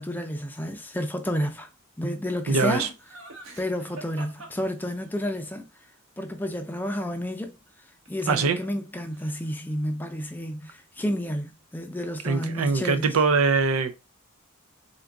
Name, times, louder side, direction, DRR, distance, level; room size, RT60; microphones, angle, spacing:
voice 1, 0.0-1.7 2.0-2.9 3.6-5.7 6.2-7.6 8.1-13.1, equal, 10° left, 0.4 m, -30 dB
voice 2, 2.5-2.9 8.3-8.6 12.2-13.9, right 4 dB, 80° right, 0.5 m, -23 dB
Laughter, 2.6-5.3 8.0-8.9 9.1-9.7, right 2 dB, 65° right, 0.9 m, -45 dB
3.8 x 2.5 x 3.4 m
head